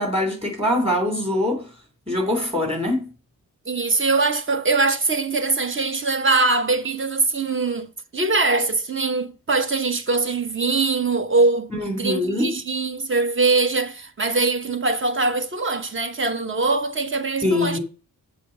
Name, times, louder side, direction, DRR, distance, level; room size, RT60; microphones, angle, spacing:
voice 1, 0.0-1.6 2.1-3.0 11.7-12.5 17.4-17.8, left 1 dB, 20° right, 3.2 m, -23 dB
voice 2, 3.7-17.8, right 3 dB, 35° right, 1.0 m, -22 dB
7.5 x 5.8 x 6.6 m
wide cardioid pair, 155°, 34 cm